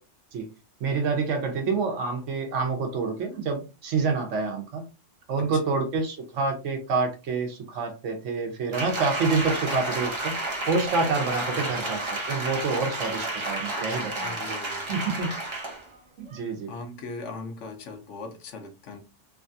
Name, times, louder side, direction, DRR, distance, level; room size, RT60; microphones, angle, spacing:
voice 1, 0.8-4.9 5.3-10.4 10.7-14.4 14.9-15.3 16.2-16.7, right 4 dB, 80° right, 1.1 m, -27 dB
Applause, 8.7-15.9 16.3-16.4, right 2 dB, 30° right, 0.6 m, -31 dB
voice 2, 11.2-11.7 14.2-14.9 16.7-19.0, left 3 dB, 75° left, 1.0 m, -39 dB
3.2 x 2.3 x 2.6 m
omnidirectional pair, 1.3 m